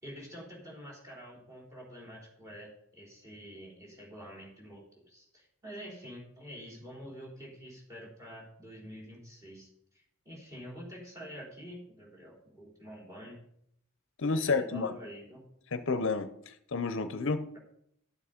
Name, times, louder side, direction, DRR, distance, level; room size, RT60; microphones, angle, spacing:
voice 1, 0.0-9.7 9.9-13.4 14.3-15.4, equal, 15° right, -2 dB, 3.8 m, -47 dB
voice 2, 14.2-14.9 15.7-16.3 16.7-17.5, left 4 dB, 60° left, 10 dB, 0.7 m, -29 dB
12.0 x 7.2 x 5.1 m, 0.71 s
head